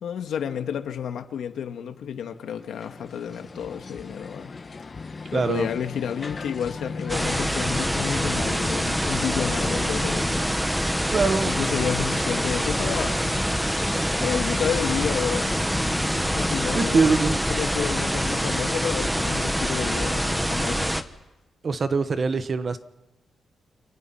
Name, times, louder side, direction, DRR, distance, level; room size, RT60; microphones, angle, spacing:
voice 1, 0.0-4.5 5.3-10.7 11.4-13.2 14.2-15.6 16.3-17.1 17.5-20.9, left 8 dB, 75° left, 1.9 m, -30 dB
sound 1, 2.4-17.4, left 4 dB, 30° left, 1.3 m, -36 dB
voice 2, 5.3-5.7 11.1-11.5 16.7-17.4 21.6-22.8, right 4 dB, 35° right, 1.1 m, -23 dB
sound 2, 7.1-21.0, equal, 5° right, 1.0 m, -25 dB
29.5 x 25.5 x 5.8 m
wide cardioid pair, 160°, 0 cm